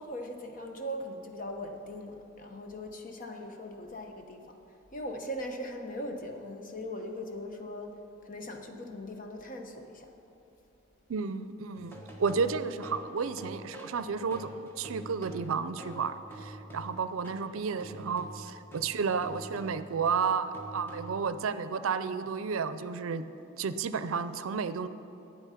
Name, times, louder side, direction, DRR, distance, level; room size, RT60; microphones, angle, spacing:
voice 1, 0.0-4.6 4.9-7.9 8.2-10.1 11.7-11.8, equal, 40° left, 4 dB, 1.0 m, -40 dB
voice 2, 11.1-23.3 23.6-24.9, right 5 dB, 85° right, 13 dB, 0.5 m, -32 dB
sound 1, 11.7-17.5 17.8-21.4, right 1 dB, 10° left, 1.2 m, -46 dB
12.0 x 8.8 x 5.7 m, 2.9 s
head